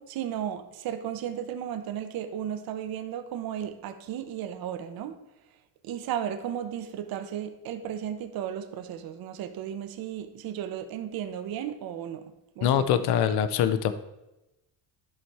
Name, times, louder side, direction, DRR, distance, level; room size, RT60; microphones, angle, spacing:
voice 1, 0.0-5.2 5.8-13.4, right 9 dB, 50° right, 0.7 m, -35 dB
voice 2, 12.6-13.9, left 9 dB, 55° left, 0.6 m, -23 dB
11.0 x 4.2 x 4.6 m
cardioid pair, 175°, 46 cm